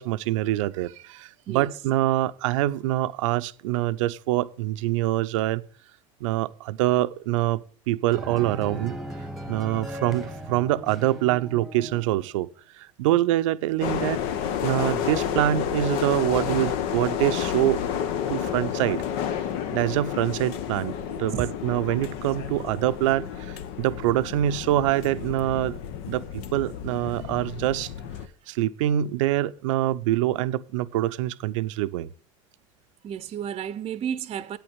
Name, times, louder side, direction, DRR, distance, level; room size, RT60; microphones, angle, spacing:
voice 1, 0.0-5.6 6.2-8.9 9.5-12.5 12.8-14.2 14.6-17.8 18.3-19.0 19.7-25.8 26.1-27.9 28.5-32.1, right 14 dB, 75° right, 0.7 m, -25 dB
sound 1, 8.1-12.3, equal, ahead, 1.3 m, -38 dB
sound 2, 13.8-28.3, left 9 dB, 65° left, 1.0 m, -30 dB
voice 2, 21.1-21.5 33.0-34.6, right 9 dB, 35° right, 0.8 m, -32 dB
8.6 x 8.0 x 7.9 m
hypercardioid pair, 90°, 16 cm